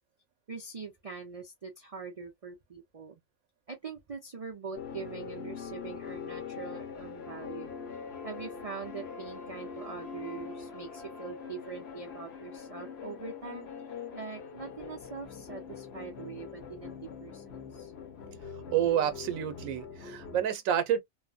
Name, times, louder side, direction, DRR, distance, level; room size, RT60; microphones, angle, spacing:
voice 1, 0.5-3.2 3.7-7.7 8.2-13.7 14.1-16.9 17.2-17.9, right 5 dB, 50° right, 0.4 m, -43 dB
sound 1, 4.7-20.5, left 6 dB, 55° left, 0.9 m, -43 dB
voice 2, 18.7-21.0, right 9 dB, 90° right, 1.0 m, -29 dB
3.2 x 2.0 x 2.2 m
omnidirectional pair, 1.4 m